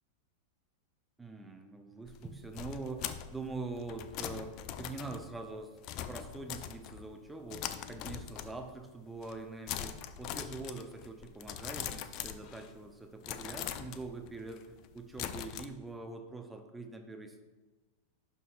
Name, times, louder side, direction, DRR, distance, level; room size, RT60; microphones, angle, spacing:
voice 1, 1.2-5.7 6.1-17.4, right 3 dB, 10° right, 5 dB, 0.8 m, -44 dB
sound 1, 2.1-7.2 7.5-8.8 9.1-9.4 9.7-12.9 13.2-15.7, left 10 dB, 40° left, 0.4 m, -42 dB
11.0 x 5.5 x 2.5 m, 1.2 s
figure-of-eight pair, 90°, 0 cm